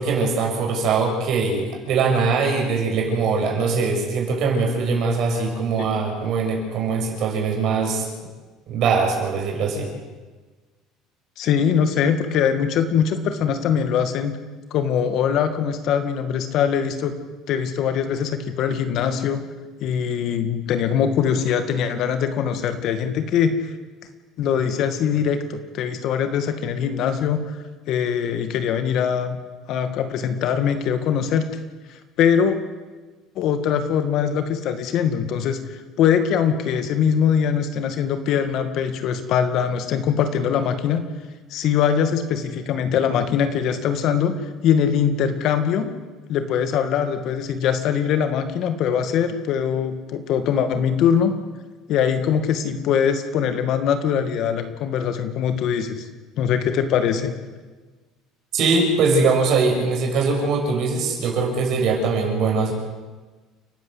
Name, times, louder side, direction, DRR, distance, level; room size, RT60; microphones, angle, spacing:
voice 1, 0.0-8.0 8.7-9.9 58.5-62.7, right 4 dB, 55° right, 1 dB, 6.9 m, -21 dB
voice 2, 11.4-14.3 14.7-17.2 17.5-19.4 19.8-23.7 24.4-27.6 27.9-29.4 29.7-31.5 32.2-32.6 33.4-41.1 41.5-44.3 44.6-45.9 46.3-51.3 51.9-56.0 56.4-57.3, left 8 dB, 55° left, 9 dB, 2.1 m, -22 dB
30.0 x 12.0 x 8.2 m, 1.3 s
cardioid pair, 145°, 0 cm